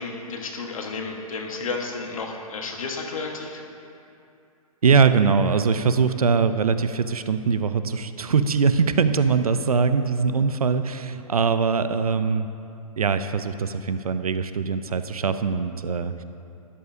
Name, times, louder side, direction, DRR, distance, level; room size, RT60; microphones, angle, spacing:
voice 1, 0.0-3.6, left 4 dB, 65° left, 2 dB, 1.4 m, -32 dB
voice 2, 4.8-12.5 13.0-16.2, right 5 dB, 75° right, 11 dB, 0.6 m, -22 dB
12.5 x 11.0 x 2.7 m, 2.6 s
figure-of-eight pair, 120°, 19 cm